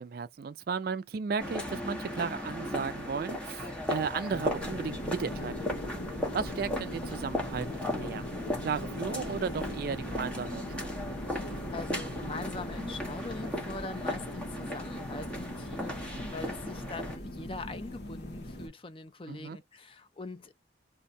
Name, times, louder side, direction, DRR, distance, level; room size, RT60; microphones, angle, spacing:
voice 1, 0.0-5.8 6.3-8.2 8.6-10.9 19.3-19.6, right 5 dB, 50° right, 0.3 m, -35 dB
sound 1, 1.4-17.2, left 1 dB, 5° left, 0.8 m, -37 dB
sound 2, 4.3-18.7, left 1 dB, 60° left, 1.0 m, -40 dB
voice 2, 11.3-20.5, left 3 dB, 30° left, 0.5 m, -43 dB
2.6 x 2.2 x 4.0 m
head